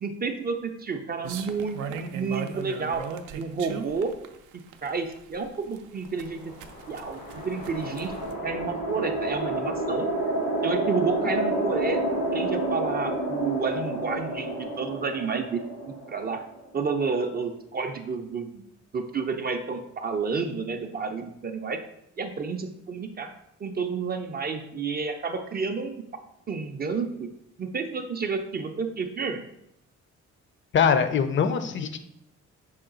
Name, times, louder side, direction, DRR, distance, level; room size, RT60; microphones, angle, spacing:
voice 1, 0.0-3.0 3.3-4.1 4.5-6.5 6.9-10.1 10.6-15.7 16.1-16.4 16.7-18.7 18.9-21.8 22.2-23.3 23.6-26.0 26.5-27.3 27.6-29.4, right 5 dB, 30° right, 6 dB, 0.4 m, -30 dB
sound 1, 1.2-8.3, right 7 dB, 85° right, 0.5 m, -38 dB
sound 2, 6.4-16.8, right 1 dB, 85° left, 1.5 m, -30 dB
voice 2, 30.7-32.0, left 6 dB, 40° left, 10 dB, 0.5 m, -22 dB
5.6 x 2.3 x 3.8 m, 0.79 s
cardioid pair, 90°, 30 cm